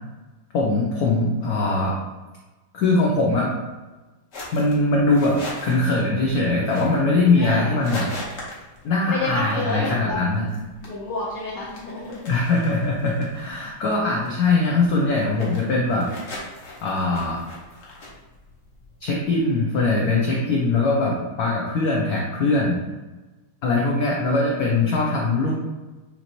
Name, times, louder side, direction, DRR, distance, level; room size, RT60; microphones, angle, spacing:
voice 1, 0.5-1.9 2.7-3.5 4.5-8.1 8.8-10.5 12.2-16.1 16.8-17.4 19.0-22.8 23.6-25.5, left 2 dB, 85° left, -2 dB, 0.8 m, -21 dB
sound 1, 4.3-19.7, left 2 dB, 45° left, 0.9 m, -41 dB
voice 2, 7.3-7.7 9.1-10.1 10.8-12.3, left 2 dB, 65° left, -8 dB, 1.3 m, -29 dB
5.9 x 2.6 x 2.9 m, 1.2 s
omnidirectional pair, 2.3 m